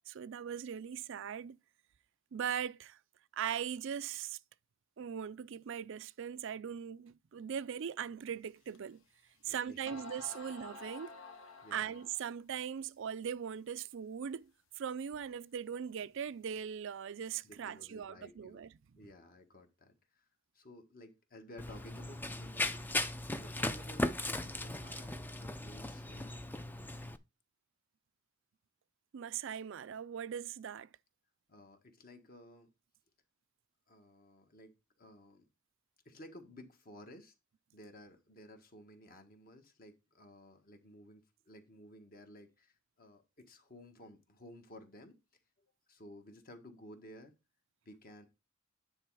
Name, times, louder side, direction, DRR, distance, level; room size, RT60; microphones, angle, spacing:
voice 1, 0.1-1.6 2.3-3.0 3.3-4.4 5.0-9.0 9.4-11.2 11.7-14.5 14.8-18.7 29.1-30.9, right 8 dB, 65° right, 0.4 m, -40 dB
sound 1, 8.7-8.8 9.5-9.6 9.9-12.3, left 3 dB, 70° left, 1.1 m, -50 dB
voice 2, 9.4-10.5 11.6-11.9 17.4-18.6 18.9-20.3 20.5-22.9 23.3-26.3 31.5-32.7 33.9-34.7 35.0-35.5 36.0-37.3 37.7-45.1 45.6-47.3 47.8-48.3, left 1 dB, 45° left, 1.5 m, -55 dB
Run, 21.6-27.2, left 2 dB, 10° left, 0.4 m, -37 dB
9.8 x 4.2 x 4.7 m
head